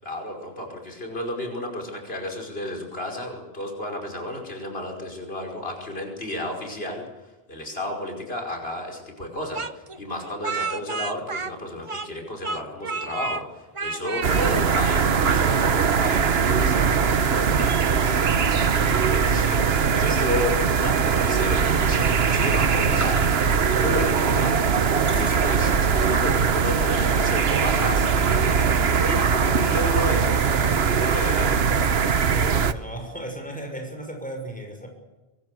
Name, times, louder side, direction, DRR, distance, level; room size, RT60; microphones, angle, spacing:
voice 1, 0.0-7.1 7.5-24.6 25.0-31.6, left 1 dB, 75° left, 2 dB, 5.5 m, -32 dB
Speech, 9.5-12.2 12.4-13.4 13.7-14.5, right 4 dB, 35° right, 0.9 m, -31 dB
sound 1, 14.2-32.7, right 6 dB, 85° right, 1.3 m, -21 dB
sound 2, 22.0-23.7 24.3-26.1 26.5-27.1, right 1 dB, 15° right, 1.7 m, -40 dB
voice 2, 32.2-34.9, right 1 dB, 10° left, 3 dB, 6.2 m, -35 dB
24.0 x 22.5 x 8.2 m, 1.1 s
omnidirectional pair, 1.0 m